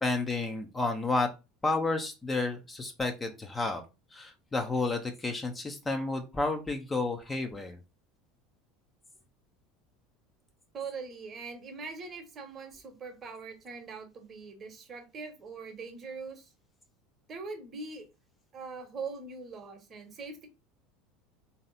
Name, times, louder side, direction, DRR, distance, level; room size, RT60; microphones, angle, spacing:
voice 1, 0.0-1.3 1.6-3.8 4.1-7.8, left 3 dB, 15° left, 0.8 m, -31 dB
voice 2, 10.7-16.5 17.3-18.1 18.5-20.5, right 4 dB, 35° right, 1.1 m, -42 dB
3.2 x 2.8 x 4.0 m
figure-of-eight pair, 70°, 0 cm